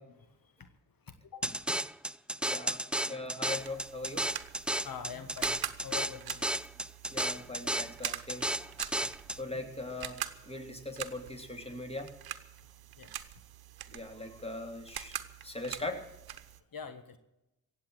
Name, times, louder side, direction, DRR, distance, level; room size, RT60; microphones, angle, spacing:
voice 1, 1.1-1.5 3.0-3.1 4.8-6.4 9.0-9.1 13.0-13.3 16.7-17.2, left 6 dB, 70° left, 10 dB, 1.4 m, -44 dB
sound 1, 1.4-9.4, right 1 dB, 5° right, 0.5 m, -33 dB
voice 2, 2.4-2.8 3.1-4.2 7.1-8.8 9.3-12.1 13.9-15.2 15.4-16.0, left 2 dB, 15° left, 4 dB, 3.2 m, -40 dB
sound 2, 3.5-16.6, right 11 dB, 85° right, 0.9 m, -44 dB
16.5 x 8.3 x 9.0 m, 0.92 s
cardioid pair, 50°, 36 cm